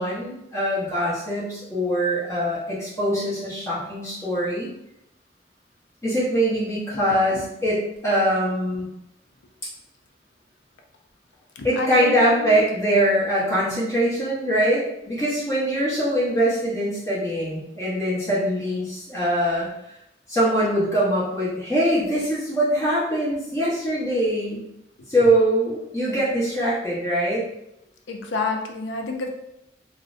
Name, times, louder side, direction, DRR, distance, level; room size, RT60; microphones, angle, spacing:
voice 1, 0.0-4.7 6.0-8.9 11.6-19.7 20.3-24.7 25.1-27.4, right 1 dB, 15° left, -8 dB, 0.7 m, -23 dB
voice 2, 11.6-12.6 26.1-26.2 28.1-29.3, left 4 dB, 90° left, 2 dB, 0.4 m, -29 dB
2.5 x 2.0 x 2.4 m, 0.84 s
head